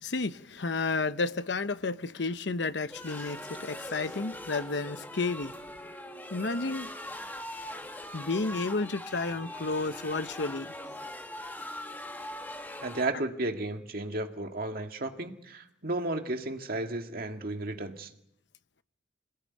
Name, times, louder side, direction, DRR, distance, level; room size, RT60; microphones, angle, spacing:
voice 1, 0.0-5.5 6.3-6.9 8.1-10.7, left 3 dB, 70° left, 12 dB, 0.9 m, -31 dB
sound 1, 2.9-13.1, left 1 dB, 10° left, 1.8 m, -41 dB
voice 2, 12.8-18.1, right 2 dB, 55° right, 5 dB, 1.9 m, -33 dB
25.5 x 20.0 x 9.6 m, 0.81 s
head